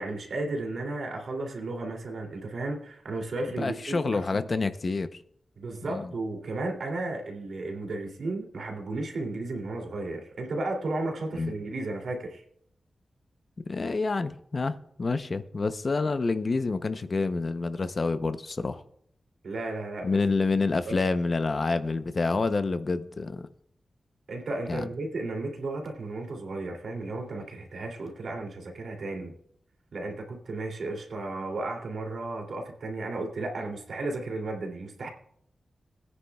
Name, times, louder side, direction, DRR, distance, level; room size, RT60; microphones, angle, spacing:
voice 1, 0.0-4.4 5.6-12.4 19.4-20.2 20.9-21.0 24.3-29.3 29.9-35.1, right 2 dB, 75° right, 2 dB, 2.8 m, -34 dB
voice 2, 3.6-5.2 5.9-6.1 11.3-11.5 13.7-18.8 20.0-23.5 24.7-24.8, left 3 dB, 45° left, 10 dB, 0.7 m, -28 dB
20.5 x 9.7 x 2.3 m, 0.69 s
wide cardioid pair, 110°, 0 cm